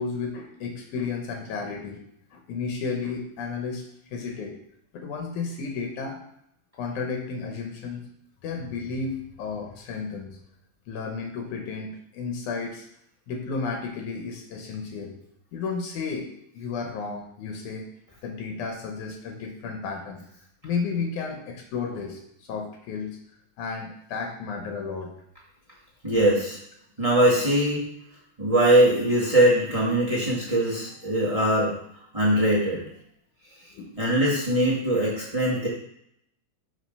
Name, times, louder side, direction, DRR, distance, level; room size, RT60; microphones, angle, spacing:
voice 1, 0.0-2.0 2.3-3.8 4.1-4.6 4.9-6.2 6.7-8.0 8.4-10.4 10.9-12.9 13.3-15.2 15.5-17.9 18.2-20.2 20.6-23.2 23.6-25.1 33.7-33.9 34.2-34.3 34.5-34.6, left 5 dB, 75° left, 2 dB, 2.3 m, -33 dB
voice 2, 26.0-26.6 27.0-27.8 28.4-31.8 32.1-32.8 34.0-35.7, right 1 dB, 15° right, -6 dB, 1.3 m, -21 dB
6.3 x 5.1 x 5.3 m, 0.74 s
omnidirectional pair, 3.6 m